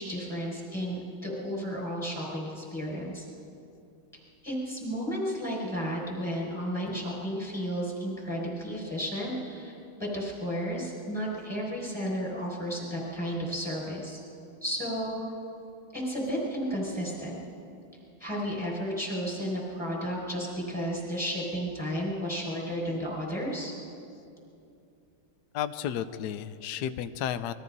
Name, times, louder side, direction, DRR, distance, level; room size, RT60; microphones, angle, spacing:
voice 1, 0.0-3.3 4.4-14.2 14.6-15.2 15.9-17.4 18.2-23.7, equal, ahead, -4 dB, 5.9 m, -33 dB
voice 2, 25.5-27.5, left 10 dB, 65° left, 10 dB, 1.0 m, -32 dB
29.0 x 22.0 x 4.1 m, 2.7 s
omnidirectional pair, 2.3 m